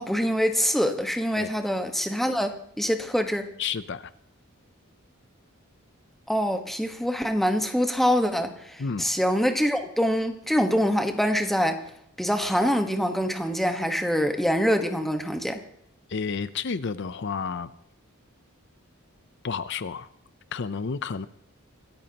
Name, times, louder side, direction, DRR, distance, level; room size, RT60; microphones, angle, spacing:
voice 1, 0.0-3.5 6.3-11.8 12.2-15.6, equal, ahead, 1.2 m, -25 dB
voice 2, 3.6-4.1 8.8-9.0 16.1-17.7 19.4-20.1 20.5-21.3, left 5 dB, 55° left, 0.5 m, -31 dB
26.0 x 14.0 x 2.9 m
head